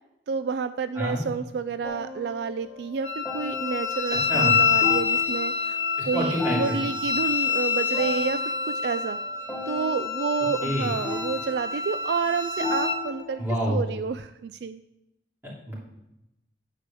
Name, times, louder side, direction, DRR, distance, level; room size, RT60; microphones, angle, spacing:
voice 1, 0.3-5.8 6.0-9.2 9.7-14.8, right 5 dB, 60° right, 12 dB, 0.3 m, -29 dB
sound 1, 1.8-14.1, left 4 dB, 10° left, 1.3 m, -37 dB
Wind instrument woodwind instrument, 3.0-13.0, left 6 dB, 35° left, 1.2 m, -27 dB
voice 2, 6.0-6.8 10.6-10.9 13.4-13.8 15.4-15.7, equal, 10° right, -5 dB, 2.9 m, -27 dB
9.7 x 5.0 x 6.9 m, 0.88 s
head